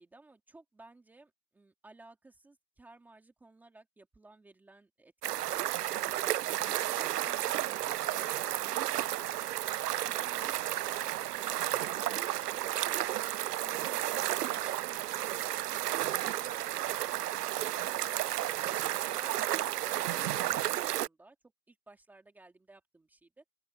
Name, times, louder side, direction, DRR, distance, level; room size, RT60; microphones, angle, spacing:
voice 1, 0.0-6.0 9.9-12.3 17.5-21.4 21.7-23.4, right 2 dB, 5° right, 2.4 m, -57 dB
sound 1, 5.2-21.1, right 13 dB, 70° right, 0.6 m, -32 dB
open air
hypercardioid pair, 170°, 49 cm